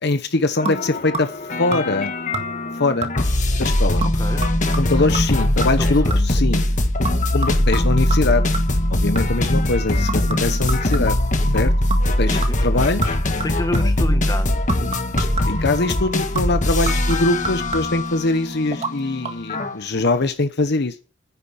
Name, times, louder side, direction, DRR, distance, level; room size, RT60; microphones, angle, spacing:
voice 1, 0.0-1.3 1.6-2.1 2.8-3.1 3.6-4.0 4.8-6.7 7.3-8.4 8.9-11.2 11.5-11.7 12.2-13.2 15.2-20.9, left 2 dB, 60° left, 9 dB, 1.0 m, -22 dB
sound 1, 0.6-19.7, left 1 dB, 40° left, 1.6 m, -21 dB
sound 2, 0.7-1.4 1.7-2.1 2.3-2.7 3.0-3.4 4.0-6.4 7.0-9.5 10.1-11.4 11.9-12.1 12.4-14.1 14.7-15.7 16.4-18.1 18.7-18.9 19.2-19.3, right 3 dB, 35° right, 1.8 m, -31 dB
voice 2, 4.1-4.5 5.0-5.1 5.8-6.2 12.3-12.9 13.4-14.7, left 1 dB, 20° left, 7 dB, 1.8 m, -29 dB
10.5 x 9.7 x 8.9 m, 0.40 s
head